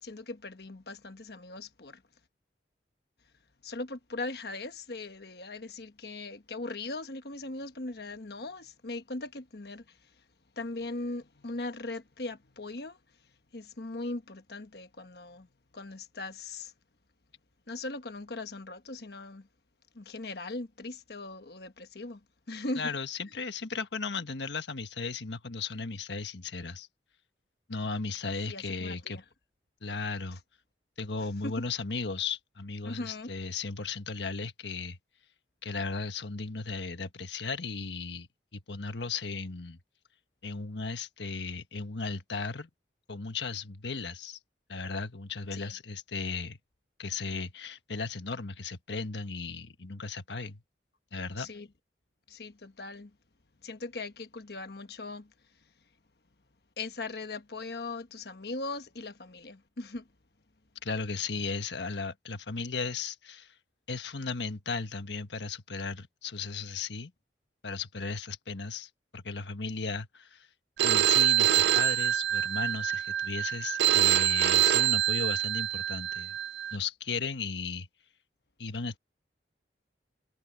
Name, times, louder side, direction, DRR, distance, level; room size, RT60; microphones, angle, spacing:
voice 1, 0.0-2.0 3.6-9.8 10.6-13.0 13.5-15.5 15.7-16.7 17.7-19.5 19.9-22.2 22.5-22.9 28.5-29.2 31.4-31.5 32.8-33.3 45.5-45.7 51.4-51.7 52.3-53.1 53.6-55.3 56.8-60.0, left 2 dB, 65° left, 1.2 m, -39 dB
voice 2, 22.8-26.9 27.7-29.2 29.8-30.4 31.0-35.0 35.6-39.8 40.4-42.7 43.1-44.4 44.7-46.6 47.0-50.6 51.1-51.5 60.8-63.5 63.9-67.1 67.6-70.5 70.8-76.4 76.7-77.9 78.6-79.0, left 4 dB, 85° left, 1.4 m, -36 dB
Telephone, 70.8-76.8, right 12 dB, 70° right, 0.4 m, -25 dB
head